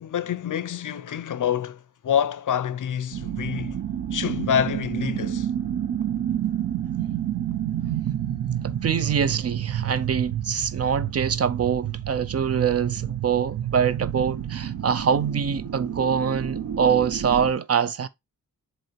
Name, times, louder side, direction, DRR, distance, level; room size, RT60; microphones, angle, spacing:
voice 1, 0.0-3.8 4.1-5.5, left 9 dB, 60° left, 0.6 m, -27 dB
sound 1, 3.1-17.5, right 10 dB, 70° right, 0.9 m, -29 dB
voice 2, 8.6-18.1, right 7 dB, 45° right, 0.5 m, -24 dB
7.8 x 3.1 x 4.5 m
wide cardioid pair, 180°, 34 cm